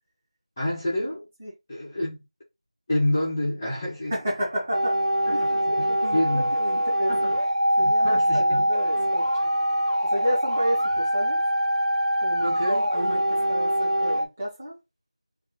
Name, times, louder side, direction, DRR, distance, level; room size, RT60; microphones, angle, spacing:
voice 1, 0.6-1.3 1.7-2.2 2.9-4.1 5.3-5.4 5.8-6.5 7.1-7.3 7.8-8.6 12.4-12.8, left 1 dB, 5° left, 0.5 m, -28 dB
voice 2, 4.1-5.0 5.3-7.1 7.8-9.5 10.0-11.4 12.2-14.8, equal, 15° right, 1.1 m, -31 dB
sound 1, 4.7-14.2, equal, 60° right, 1.4 m, -23 dB
3.9 x 2.3 x 3.6 m
figure-of-eight pair, 175°, 4 cm